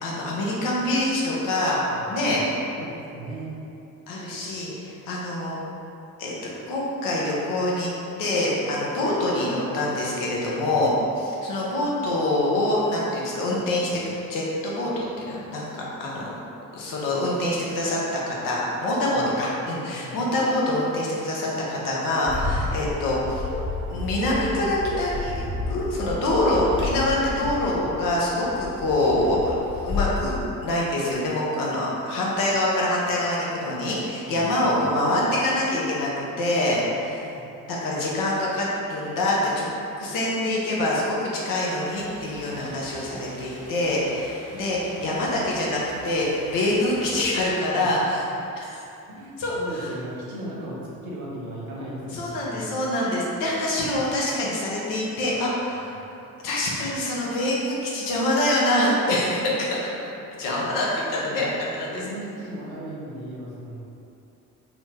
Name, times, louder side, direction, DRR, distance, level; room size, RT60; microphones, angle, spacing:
voice 1, 0.0-1.8 2.1-2.4 4.1-5.6 6.2-6.3 6.7-7.9 8.2-14.0 14.3-16.3 16.7-23.5 23.9-29.6 29.8-37.2 37.7-39.7 40.0-48.2 48.6-48.8 49.4-49.9 52.1-55.9 56.4-59.9 60.4-62.0, left 1 dB, 50° left, -5 dB, 0.7 m, -25 dB
voice 2, 2.8-3.5 10.5-10.8 19.1-19.2 20.0-20.1 26.7-26.8 34.2-34.7 37.0-37.5 47.7-48.4 49.1-52.7 55.9-56.3 59.1-59.2 59.6-60.5 61.2-61.4 61.8-63.8, right 1 dB, 85° right, -5 dB, 0.5 m, -38 dB
Bark, 22.3-30.3, left 3 dB, 15° left, 1.0 m, -31 dB
sound 1, 41.9-47.5, right 1 dB, 45° right, 1.0 m, -45 dB
2.8 x 2.1 x 3.3 m, 2.8 s
figure-of-eight pair, 45°, 42 cm